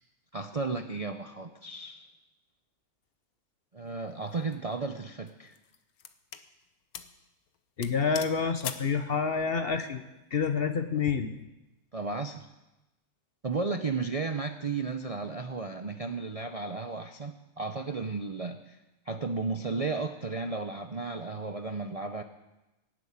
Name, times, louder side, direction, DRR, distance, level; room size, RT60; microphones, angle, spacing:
voice 1, 0.3-2.1 3.7-5.6 10.9-11.0 11.9-12.5 13.4-18.8 19.1-22.2, right 4 dB, 35° right, 6 dB, 0.6 m, -34 dB
sound 1, 4.2-4.5 5.3-6.5 6.9-7.2 7.5-7.6 7.8-8.9, left 8 dB, 90° left, 1.3 m, -41 dB
voice 2, 7.8-10.0 10.3-11.4, left 5 dB, 50° left, 9 dB, 1.0 m, -28 dB
17.5 x 7.8 x 8.8 m, 0.99 s
omnidirectional pair, 1.5 m